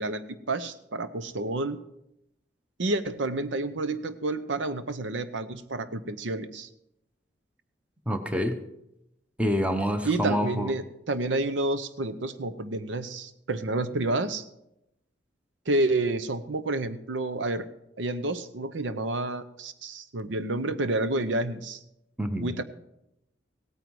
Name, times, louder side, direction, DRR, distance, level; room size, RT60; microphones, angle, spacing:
voice 1, 0.0-1.8 2.8-6.7 10.0-14.4 15.7-17.7 18.0-21.8 22.4-22.6, right 2 dB, 90° right, 12 dB, 0.8 m, -29 dB
voice 2, 8.1-8.6 9.4-10.7 22.2-22.5, equal, 5° right, 7 dB, 0.9 m, -27 dB
17.0 x 9.1 x 4.7 m, 0.83 s
head